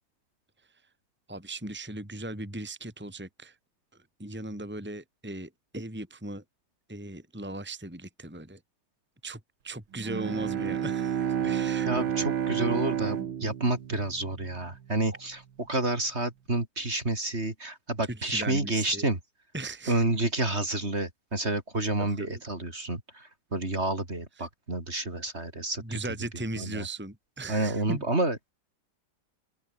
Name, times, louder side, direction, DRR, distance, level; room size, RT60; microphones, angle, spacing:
voice 1, 1.3-3.6 4.2-6.4 6.9-8.6 9.2-11.9 14.6-14.7 18.1-19.1 19.5-20.0 22.0-22.4 24.4-24.5 25.8-28.0, right 2 dB, 5° right, 2.9 m, -38 dB
Bowed string instrument, 9.9-14.8, right 9 dB, 75° right, 2.2 m, -30 dB
voice 2, 11.9-19.2 19.9-25.8 26.6-26.8 27.5-28.5, right 2 dB, 30° right, 4.2 m, -29 dB
open air
omnidirectional pair, 2.2 m